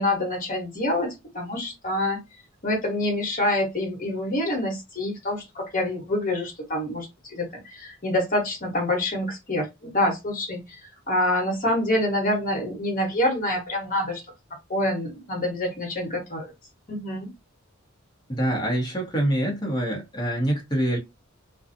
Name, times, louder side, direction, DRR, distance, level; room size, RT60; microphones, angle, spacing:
voice 1, 0.0-2.2 2.6-10.6 11.1-14.2 14.7-16.5 16.9-17.3, left 1 dB, 40° left, 1.2 m, -26 dB
voice 2, 18.3-21.0, right 1 dB, 20° left, 0.9 m, -25 dB
2.5 x 2.3 x 2.5 m
head